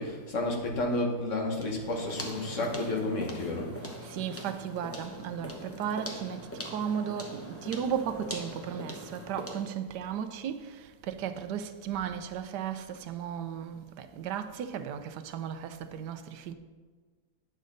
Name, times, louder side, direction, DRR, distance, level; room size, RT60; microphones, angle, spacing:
voice 1, 0.0-3.7, left 2 dB, 50° left, 1.5 m, -31 dB
sound 1, 1.6-9.8, equal, 15° left, 0.5 m, -42 dB
voice 2, 4.0-16.5, right 8 dB, 85° right, 1.2 m, -35 dB
9.4 x 6.4 x 3.9 m
omnidirectional pair, 1.8 m